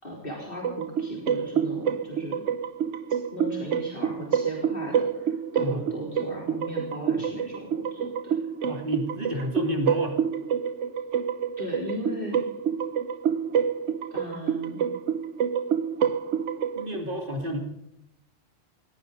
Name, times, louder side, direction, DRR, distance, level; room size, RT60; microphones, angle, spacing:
voice 1, 0.0-2.5 3.1-8.3 11.6-12.4 14.1-14.9, left 1 dB, 50° left, -2 dB, 3.9 m, -37 dB
sound 1, 0.6-17.0, right 8 dB, 85° right, 1.1 m, -28 dB
voice 2, 8.6-10.2 16.7-17.6, equal, 45° right, 3 dB, 2.7 m, -30 dB
19.0 x 18.0 x 4.0 m, 0.81 s
omnidirectional pair, 1.2 m